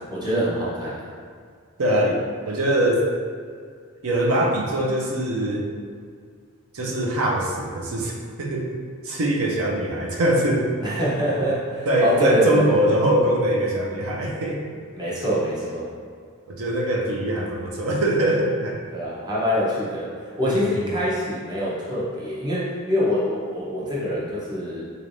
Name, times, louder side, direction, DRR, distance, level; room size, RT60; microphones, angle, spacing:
voice 1, 0.1-1.0 10.8-12.8 14.9-15.9 18.9-24.8, equal, 20° right, -8 dB, 0.8 m, -24 dB
voice 2, 1.8-2.2 2.5-3.1 4.0-5.7 6.7-8.7 9.0-10.7 11.9-14.6 16.5-18.8 20.4-20.7, right 1 dB, 65° right, -1 dB, 0.5 m, -22 dB
3.7 x 3.3 x 2.6 m, 2.1 s
head